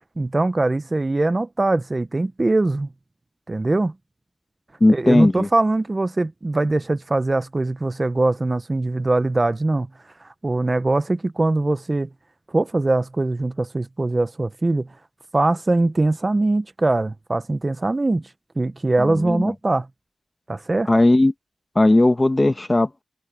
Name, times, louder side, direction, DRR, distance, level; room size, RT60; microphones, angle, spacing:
voice 1, 0.2-2.9 3.5-3.9 4.9-9.9 10.2-12.1 12.5-14.9 15.3-18.2 18.6-19.9 20.5-20.9, right 2 dB, 25° right, 0.6 m, -22 dB
voice 2, 4.8-5.5 19.0-19.4 20.9-21.3 21.7-23.0, left 2 dB, 20° left, 1.1 m, -17 dB
wide cardioid pair, 135°, 0 cm